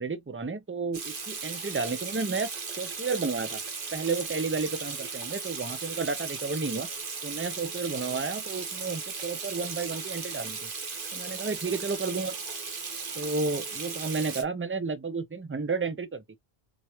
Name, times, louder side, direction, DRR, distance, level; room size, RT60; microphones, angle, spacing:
voice 1, 0.0-2.5 2.8-3.6 3.9-6.9 7.2-10.7 11.1-12.3 13.2-16.2, right 4 dB, 20° right, 0.3 m, -32 dB
Water tap faucet / Sink (filling or washing), 0.9-14.4, right 5 dB, 60° right, 1.1 m, -36 dB
4.2 x 3.0 x 2.9 m
omnidirectional pair, 1.0 m